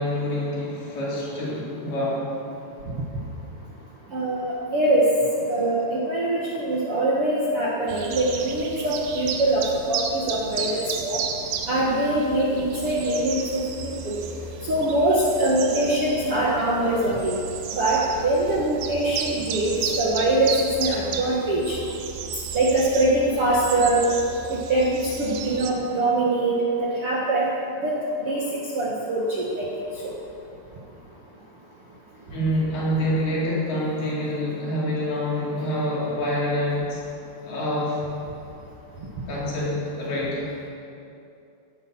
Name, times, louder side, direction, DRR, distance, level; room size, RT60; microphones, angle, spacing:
voice 1, 0.0-2.4 32.3-37.0 37.4-38.1 39.3-40.5, left 1 dB, 65° left, -7 dB, 5.7 m, -26 dB
voice 2, 4.1-5.1 5.5-11.2 11.7-14.2 14.7-17.3 17.7-21.8 22.5-24.0 24.5-27.5 27.8-28.0 28.2-28.4 28.8-29.7, right 1 dB, 50° right, -5 dB, 1.8 m, -23 dB
sound 1, 7.9-25.7, right 6 dB, 70° right, 2.2 m, -33 dB
17.0 x 10.5 x 7.4 m, 2.7 s
omnidirectional pair, 4.9 m